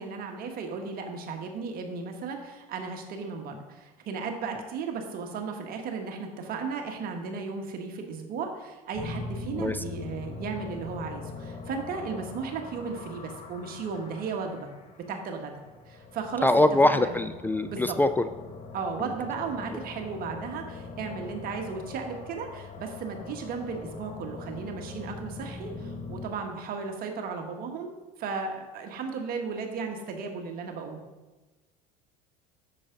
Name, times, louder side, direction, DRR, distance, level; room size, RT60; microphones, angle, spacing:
voice 1, 0.0-14.7 15.1-17.2 17.7-18.0 18.7-31.0, right 5 dB, 50° right, 3 dB, 1.5 m, -35 dB
sound 1, 8.9-26.3, left 4 dB, 30° left, 1.3 m, -42 dB
voice 2, 16.4-18.3, left 1 dB, 10° left, 10 dB, 0.3 m, -23 dB
9.7 x 7.0 x 3.9 m, 1.2 s
supercardioid pair, 95°, 19 cm